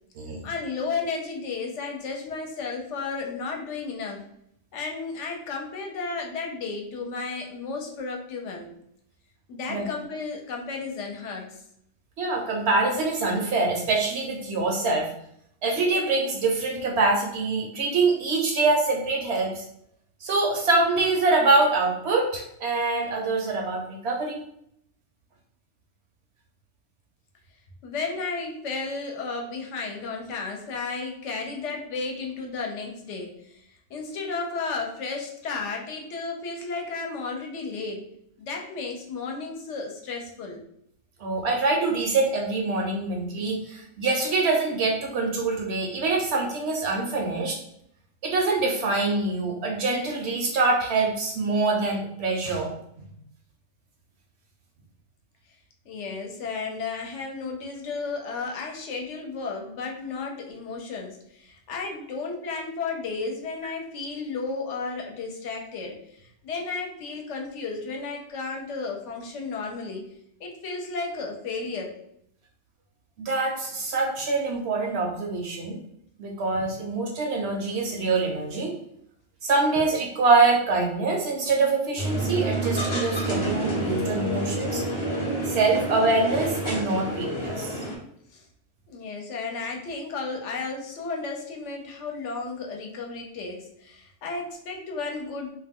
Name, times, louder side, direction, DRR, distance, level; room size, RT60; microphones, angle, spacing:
voice 1, 0.4-4.2 4.7-8.7 9.5-11.5 27.8-38.0 38.4-40.6 55.9-70.1 70.4-71.9 79.8-79.9 88.3-88.5 88.9-95.5, left 4 dB, 70° left, 1 dB, 0.9 m, -33 dB
voice 2, 12.2-15.1 15.6-19.6 20.2-24.4 41.2-47.6 48.2-53.0 73.2-75.8 76.2-78.7 79.4-84.8 85.5-87.8, right 3 dB, 65° right, 1 dB, 0.7 m, -24 dB
sound 1, 82.0-88.0, right 1 dB, 35° left, 0.5 m, -28 dB
2.4 x 2.1 x 3.5 m, 0.73 s
omnidirectional pair, 1.4 m